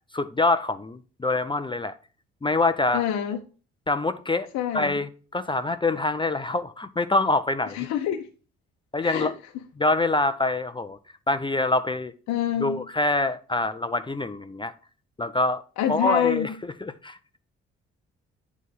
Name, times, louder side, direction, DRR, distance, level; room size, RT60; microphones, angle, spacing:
voice 1, 0.1-1.9 2.4-3.0 3.9-4.5 4.7-7.9 8.9-9.3 9.8-11.0 11.3-12.1 12.6-14.7 15.2-15.6 15.9-16.5 16.8-17.2, left 2 dB, 15° left, 0.6 m, -25 dB
voice 2, 2.9-3.4 4.5-5.0 7.7-8.3 9.0-9.3 12.3-12.8 15.8-16.5, left 10 dB, 60° left, 0.9 m, -27 dB
9.2 x 3.6 x 5.8 m
figure-of-eight pair, 45°, 31 cm